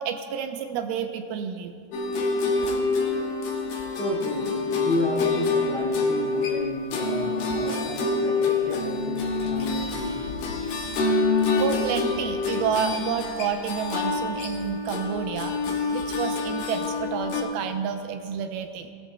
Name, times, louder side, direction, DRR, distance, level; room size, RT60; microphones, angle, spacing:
voice 1, 0.0-1.7 11.6-18.9, right 7 dB, 80° right, 6 dB, 2.6 m, -30 dB
sound 1, 1.9-17.4, left 3 dB, 70° left, 2.9 m, -27 dB
voice 2, 3.9-10.4, left 1 dB, 45° left, -6 dB, 3.4 m, -31 dB
19.5 x 13.0 x 2.3 m, 2.4 s
omnidirectional pair, 4.4 m